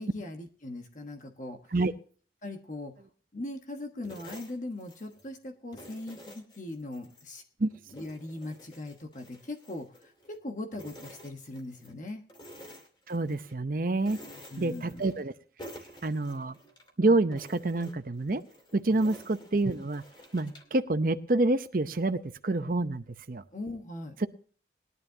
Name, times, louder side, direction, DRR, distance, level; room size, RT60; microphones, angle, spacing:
voice 1, 0.0-1.7 2.4-3.0 3.3-7.4 7.9-12.2 14.1-15.1 18.9-19.0 23.5-24.2, left 2 dB, 45° left, 4 dB, 1.2 m, -40 dB
sound 1, 4.0-5.3 5.7-7.3 7.7-10.4 10.7-12.0 12.3-13.6 14.0-15.3 15.6-16.9 17.3-20.8, equal, 25° left, 2.4 m, -50 dB
voice 2, 13.1-14.2 14.6-15.3 16.0-16.6 17.0-18.4 18.7-20.0 20.3-23.4, right 2 dB, 50° right, 9 dB, 0.7 m, -27 dB
20.5 x 11.0 x 2.8 m, 0.41 s
head